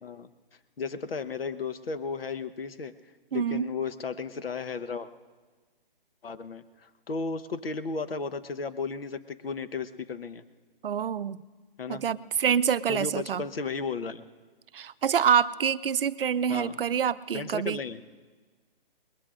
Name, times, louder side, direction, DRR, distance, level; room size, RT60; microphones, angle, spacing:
voice 1, 0.8-2.9 3.3-5.1 6.2-10.4 11.8-12.0 12.9-14.2 16.5-16.8 17.3-18.0, left 4 dB, 80° left, 10 dB, 1.1 m, -34 dB
voice 2, 3.3-3.7 10.8-11.4 11.9-13.4 14.7-17.8, right 8 dB, 70° right, 15 dB, 0.6 m, -26 dB
27.0 x 21.0 x 2.5 m, 1.4 s
hypercardioid pair, 155°, 29 cm